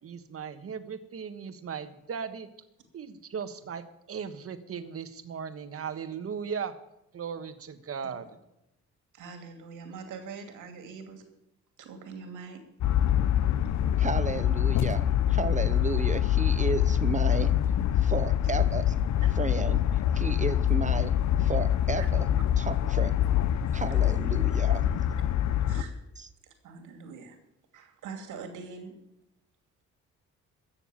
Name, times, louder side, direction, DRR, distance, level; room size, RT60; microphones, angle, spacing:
voice 1, 0.0-2.5 2.9-6.7 7.1-8.3, right 6 dB, 50° right, 10 dB, 1.4 m, -37 dB
voice 2, 9.1-11.2 11.8-12.6 21.9-22.1 23.7-23.8 25.7-26.0 26.4-27.4 27.7-29.0, right 5 dB, 80° right, 5 dB, 2.7 m, -43 dB
sound 1, 12.8-25.8, left 11 dB, 65° left, 0.8 m, -25 dB
voice 3, 14.0-17.5 18.0-19.0 19.3-22.3 22.6-23.1 23.7-25.1 26.2-26.3, right 4 dB, 25° right, 13 dB, 0.8 m, -33 dB
15.0 x 7.0 x 8.7 m, 0.85 s
cardioid pair, 90°, 30 cm